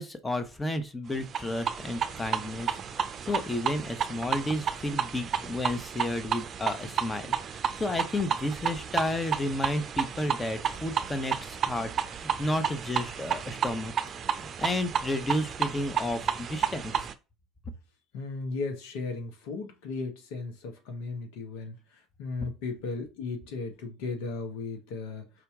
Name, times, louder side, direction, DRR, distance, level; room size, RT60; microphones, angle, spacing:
voice 1, 0.0-13.9 14.4-17.1, left 1 dB, 20° left, 1.0 m, -32 dB
sound 1, 1.2-17.1, right 7 dB, 45° right, 0.6 m, -32 dB
voice 2, 18.1-21.7 22.2-25.3, left 3 dB, 75° left, 1.3 m, -36 dB
5.0 x 2.8 x 3.6 m
hypercardioid pair, 70°, 0 cm